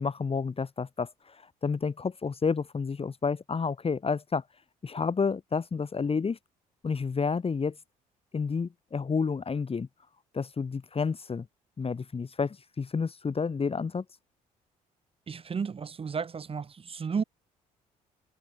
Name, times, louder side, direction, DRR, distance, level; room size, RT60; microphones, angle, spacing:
voice 1, 0.0-4.4 4.8-6.4 6.8-7.8 8.3-9.9 10.3-11.5 11.8-14.0, left 5 dB, 30° left, 1.4 m, -30 dB
voice 2, 15.3-17.2, right 6 dB, 30° right, 0.8 m, -33 dB
hypercardioid pair, 55°, 18 cm